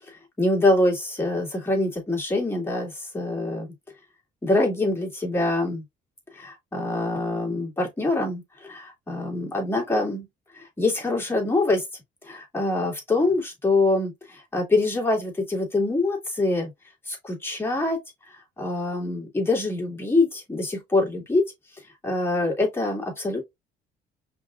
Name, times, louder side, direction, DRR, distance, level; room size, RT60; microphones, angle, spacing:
voice 1, 0.1-3.7 4.4-5.8 6.3-10.3 10.5-11.8 12.2-16.7 17.1-18.0 18.3-21.4 22.0-23.4, left 2 dB, 15° left, 2.5 m, -25 dB
5.1 x 3.7 x 2.4 m
cardioid pair, 110°, 17 cm